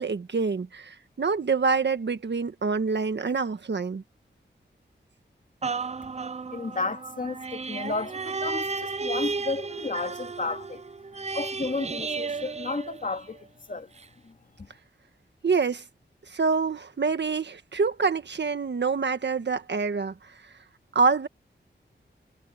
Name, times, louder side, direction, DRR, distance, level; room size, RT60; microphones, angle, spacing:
voice 1, 0.0-4.0 15.4-15.8 16.3-20.3 20.9-21.3, right 4 dB, 65° right, 1.5 m, -26 dB
sound 1, 5.6-13.5 14.0-14.1, right 4 dB, 35° right, 0.6 m, -33 dB
voice 2, 6.5-10.8 11.3-13.4 13.7-13.9 14.2-14.3 14.6-14.7, left 3 dB, 45° left, 2.6 m, -32 dB
wide cardioid pair, 105°, 19 cm